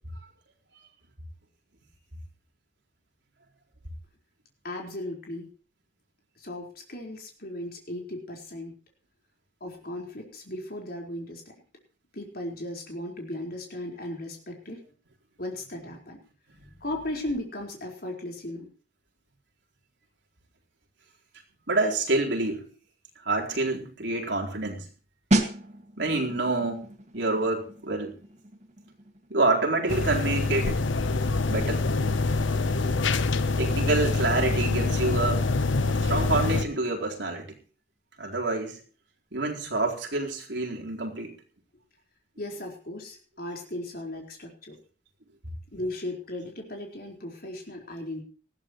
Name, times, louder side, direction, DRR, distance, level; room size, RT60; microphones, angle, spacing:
voice 1, 4.6-5.5 6.4-8.7 9.6-11.4 12.1-14.8 15.4-16.2 16.8-18.7 42.4-44.7 45.7-48.2, left 1 dB, 55° left, 1 dB, 4.6 m, -36 dB
voice 2, 21.7-22.7 23.2-24.9 26.0-26.9 27.1-28.2 29.3-30.8 31.5-31.9 33.6-35.5 36.0-37.5 38.2-38.8 39.3-41.3, right 2 dB, 65° right, -1 dB, 4.3 m, -27 dB
sound 1, 25.3-35.8 36.1-36.3, right 1 dB, 35° right, 2.1 m, -35 dB
sound 2, 29.9-36.6, left 3 dB, 90° left, 1.0 m, -25 dB
19.5 x 15.0 x 3.2 m, 0.38 s
head